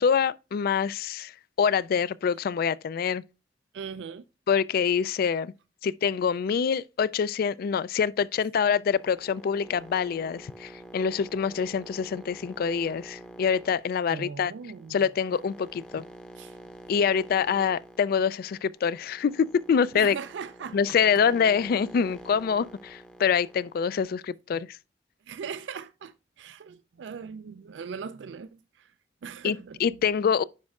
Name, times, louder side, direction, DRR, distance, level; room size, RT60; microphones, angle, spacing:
voice 1, 0.0-3.2 4.5-5.5 5.8-14.5 14.9-16.0 16.9-20.2 20.7-24.8 29.4-29.6 29.8-30.4, left 6 dB, 55° left, 0.3 m, -25 dB
voice 2, 3.7-4.2 14.1-15.0 16.4-16.6 19.9-21.0 25.3-28.9 29.2-29.8, right 6 dB, 80° right, 0.4 m, -39 dB
sound 1, 8.9-24.1, right 1 dB, 5° left, 0.7 m, -47 dB
9.5 x 5.3 x 2.4 m
head